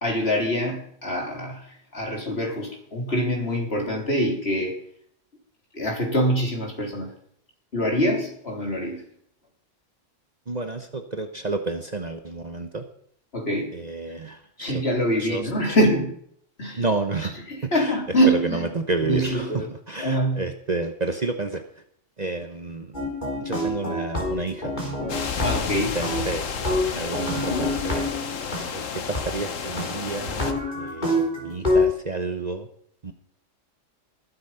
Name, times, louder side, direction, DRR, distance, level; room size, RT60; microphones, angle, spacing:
voice 1, 0.0-4.8 5.7-7.1 7.7-9.0 13.3-13.8 14.6-16.1 16.6-16.8 17.5-18.7 19.1-19.7 20.0-20.4 25.4-26.0, equal, 50° left, 0 dB, 3.9 m, -24 dB
voice 2, 10.5-12.8 13.7-14.8 15.2-15.5 16.8-17.4 17.6-17.9 18.3-21.6 22.2-22.9 23.4-24.7 25.7-26.5 26.8-28.1 28.7-32.7 33.0-33.1, right 3 dB, 35° right, 7 dB, 1.0 m, -30 dB
sound 1, 22.9-25.7 26.0-28.6 29.1-29.2 29.8-29.9 30.3-31.9, left 1 dB, 35° left, 4.2 m, -26 dB
sound 2, 25.1-30.5, left 6 dB, 80° left, 1.6 m, -31 dB
20.0 x 8.3 x 5.7 m, 0.65 s
omnidirectional pair, 1.3 m